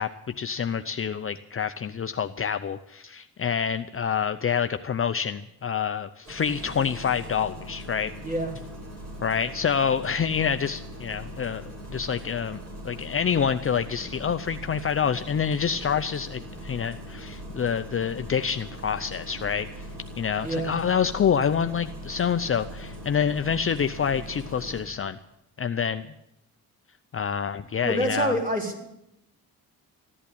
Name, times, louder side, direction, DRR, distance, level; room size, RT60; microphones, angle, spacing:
voice 1, 0.0-8.1 9.2-11.6 11.9-12.6 12.8-19.9 20.2-25.2 25.6-26.1 27.1-28.4, left 7 dB, 35° left, 9 dB, 0.7 m, -27 dB
Engine starting, 6.2-24.8, equal, 40° right, 7.0 m, -41 dB
voice 2, 20.4-20.7 27.8-28.9, right 1 dB, 20° right, 0 dB, 4.4 m, -27 dB
15.0 x 11.0 x 8.6 m, 0.83 s
cardioid pair, 90°, 38 cm